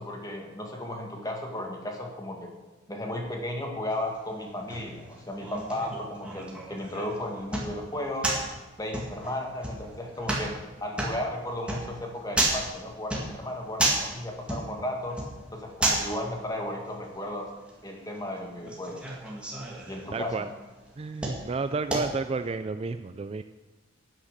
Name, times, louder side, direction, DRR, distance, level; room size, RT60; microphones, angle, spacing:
voice 1, 0.0-2.5 2.9-8.3 8.8-10.5 10.8-15.2 15.5-17.5 17.8-19.0 19.9-20.5, left 1 dB, 20° left, 1 dB, 1.8 m, -34 dB
sound 1, 3.9-22.5, right 2 dB, 5° right, 2.1 m, -34 dB
voice 2, 20.1-20.5 21.0-23.4, right 4 dB, 30° right, 10 dB, 0.3 m, -31 dB
9.8 x 8.9 x 6.7 m, 1.1 s
head